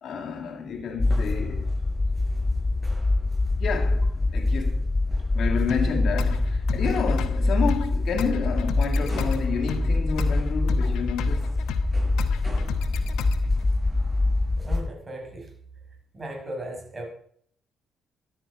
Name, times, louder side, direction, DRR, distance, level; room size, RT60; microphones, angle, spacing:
voice 1, 0.0-1.7 3.6-4.8 5.3-11.5, left 5 dB, 60° left, 2.1 m, -30 dB
sound 1, 1.0-14.9, left 2 dB, 25° left, 0.4 m, -25 dB
sound 2, 1.0-14.8, right 1 dB, 10° right, 6.9 m, -46 dB
sound 3, 5.7-13.7, left 6 dB, 90° left, 1.0 m, -33 dB
voice 2, 14.5-15.5 16.1-17.1, right 1 dB, 25° right, 5.7 m, -36 dB
13.5 x 11.0 x 4.9 m
cardioid pair, 90°, 0 cm